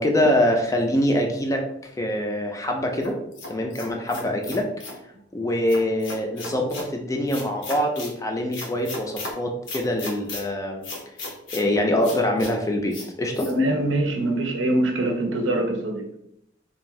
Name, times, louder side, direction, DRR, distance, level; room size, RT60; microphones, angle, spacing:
voice 1, 0.0-1.6 2.0-3.2 3.5-4.7 5.3-10.9 11.5-13.5, left 1 dB, 15° left, 3 dB, 0.3 m, -24 dB
sound 1, 3.0-5.0 5.7-6.9 7.3-8.1 8.5-9.3 9.7-10.4 10.8-11.7 12.0-12.5 12.9-13.1 13.3-13.5, left 3 dB, 80° left, 0.7 m, -36 dB
voice 2, 13.5-16.1, right 1 dB, 90° right, 3 dB, 0.6 m, -23 dB
2.6 x 2.3 x 3.1 m, 0.76 s
head